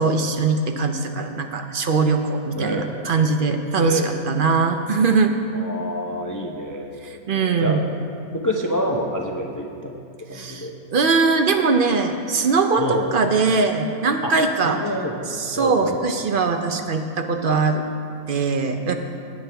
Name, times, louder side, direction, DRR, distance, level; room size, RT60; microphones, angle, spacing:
voice 1, 0.0-5.4 7.3-7.9 10.3-14.8 15.3-17.8 18.3-18.9, right 4 dB, 55° right, 5 dB, 0.6 m, -21 dB
voice 2, 2.5-2.9 3.8-4.2 5.5-7.8 8.3-9.9 10.3-10.7 12.8-13.1 14.2-14.3 14.6-16.0, equal, 20° left, 1 dB, 0.5 m, -27 dB
17.0 x 9.0 x 3.4 m, 2.4 s
omnidirectional pair, 1.5 m